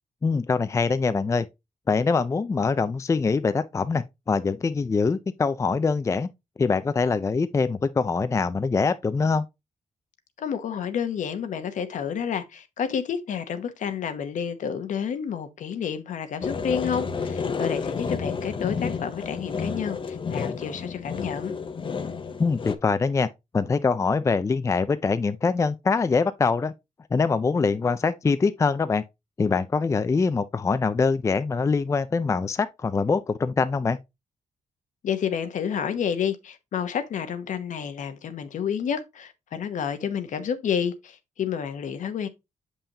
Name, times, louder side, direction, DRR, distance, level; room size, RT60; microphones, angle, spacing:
voice 1, 0.2-1.5 1.9-6.3 6.6-9.5 22.4-23.3 23.5-26.7 27.1-29.0 29.4-34.0, left 4 dB, 20° left, 0.4 m, -24 dB
voice 2, 10.4-21.5 35.0-42.3, left 7 dB, 70° left, 0.9 m, -30 dB
sound 1, 16.4-22.7, left 5 dB, 40° left, 0.8 m, -31 dB
6.9 x 5.6 x 2.8 m
cardioid pair, 100°, 13 cm